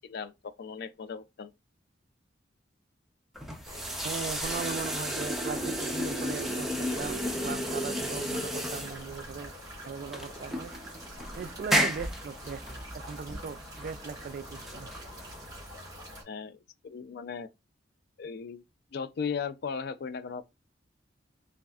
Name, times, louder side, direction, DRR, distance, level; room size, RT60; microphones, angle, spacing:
voice 1, 0.0-1.5 16.3-17.5 18.2-18.6 18.9-20.5, left 6 dB, 60° left, 0.4 m, -37 dB
sound 1, 3.3-15.8, equal, ahead, 0.7 m, -33 dB
sound 2, 3.6-16.2, equal, 20° right, 2.6 m, -45 dB
voice 2, 4.0-9.5 9.9-10.7 11.4-12.6 12.9-14.9, right 5 dB, 50° right, 0.3 m, -39 dB
4.0 x 3.5 x 2.3 m
head